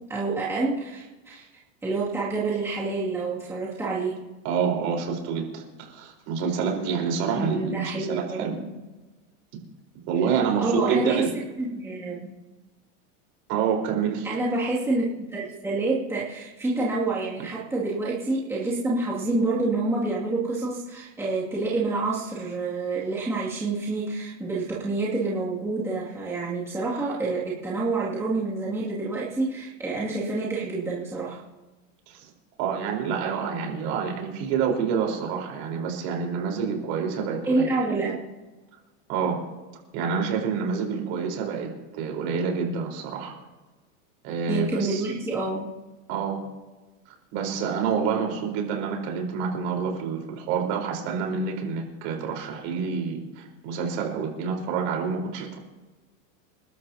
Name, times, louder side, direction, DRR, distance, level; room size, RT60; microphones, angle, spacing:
voice 1, 0.0-1.4 1.8-4.3 7.3-8.7 10.6-11.3 11.6-12.3 14.2-31.4 37.4-38.2 44.5-45.7, right 3 dB, 5° right, -8 dB, 2.4 m, -28 dB
voice 2, 4.4-5.6 5.9-8.6 10.1-11.3 13.5-14.3 32.1-32.3 32.6-37.7 39.1-39.4 39.9-43.3 44.2-45.1 46.1-46.4 47.3-55.6, right 6 dB, 50° right, 1 dB, 4.3 m, -27 dB
28.5 x 12.0 x 2.8 m, 1.2 s
supercardioid pair, 165°, 41 cm